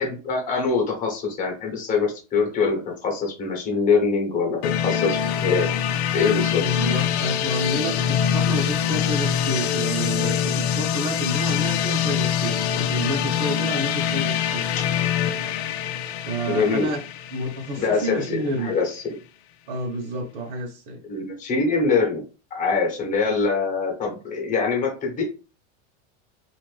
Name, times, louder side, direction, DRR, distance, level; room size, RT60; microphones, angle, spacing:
voice 1, 0.0-5.7 6.1-6.6 14.7-14.8 16.5-16.9 17.8-19.2 21.0-22.2 22.5-25.2, left 4 dB, 20° left, 0 dB, 1.1 m, -24 dB
sound 1, 4.6-18.4, left 9 dB, 60° left, 0.5 m, -24 dB
voice 2, 6.6-14.7 16.2-17.0 17.3-18.7 19.7-21.0, right 1 dB, 55° right, -1 dB, 1.1 m, -29 dB
2.8 x 2.6 x 3.3 m, 0.34 s
supercardioid pair, 160°, 36 cm